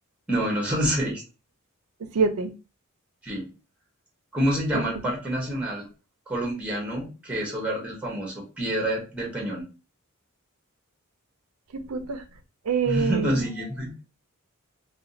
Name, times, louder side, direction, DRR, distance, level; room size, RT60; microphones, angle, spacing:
voice 1, 0.3-1.2 3.2-3.5 4.3-5.9 6.3-9.7 12.9-13.9, equal, 5° right, 0.8 m, -27 dB
voice 2, 2.0-2.5 4.7-5.0 11.7-12.2 12.6-13.5, right 5 dB, 85° right, 0.5 m, -26 dB
2.5 x 2.3 x 3.9 m
head